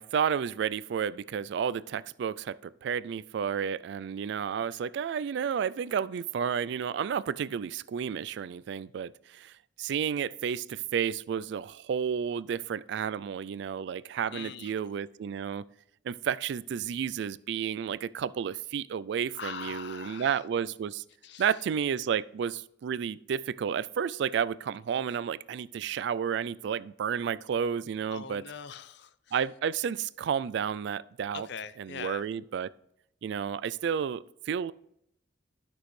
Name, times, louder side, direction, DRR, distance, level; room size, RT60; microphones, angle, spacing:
voice 1, 0.0-15.6 16.0-21.0 21.4-28.4 29.3-31.5 31.8-32.7 33.2-34.7, right 7 dB, 65° right, 0.3 m, -31 dB
voice 2, 14.3-14.7 19.3-20.4 21.2-21.5 28.1-29.4 31.3-32.2, left 7 dB, 65° left, 0.5 m, -42 dB
13.0 x 6.1 x 3.2 m
head